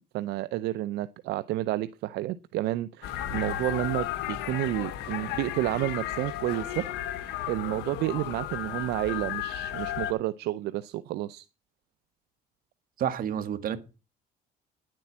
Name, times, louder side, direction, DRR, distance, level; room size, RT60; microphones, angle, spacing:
voice 1, 0.1-6.8 7.2-11.5, right 16 dB, 80° right, 0.6 m, -30 dB
sound 1, 3.0-10.1, left 12 dB, 90° left, 1.3 m, -34 dB
voice 2, 13.0-13.8, right 9 dB, 60° right, 1.6 m, -29 dB
10.5 x 7.7 x 7.2 m
cardioid pair, 110°, 17 cm